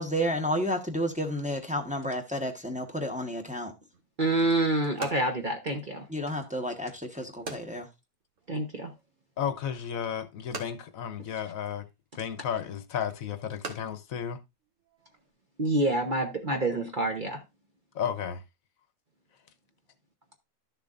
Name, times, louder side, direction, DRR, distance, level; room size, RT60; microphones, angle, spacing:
voice 1, 0.0-3.7 6.1-7.9, equal, 5° right, 1.0 m, -31 dB
sound 1, 3.9-15.3, right 3 dB, 60° right, 1.7 m, -47 dB
voice 2, 4.2-6.1 8.5-8.9 15.6-17.4, right 2 dB, 40° right, 1.0 m, -27 dB
voice 3, 9.4-11.8 12.1-14.4 17.9-18.4, left 8 dB, 70° left, 1.1 m, -33 dB
11.5 x 6.8 x 2.5 m
omnidirectional pair, 1.6 m